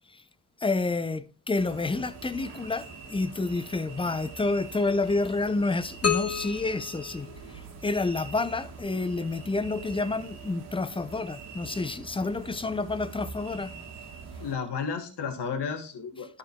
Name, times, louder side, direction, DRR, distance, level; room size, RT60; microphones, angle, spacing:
voice 1, 0.6-13.7, left 3 dB, 10° left, 0.6 m, -29 dB
sound 1, 1.5-14.5, right 5 dB, 85° right, 1.5 m, -44 dB
sound 2, 6.0-7.9, left 7 dB, 35° left, 1.4 m, -31 dB
voice 2, 14.4-16.4, left 6 dB, 60° left, 1.6 m, -33 dB
12.0 x 5.9 x 2.3 m
supercardioid pair, 50°, 46 cm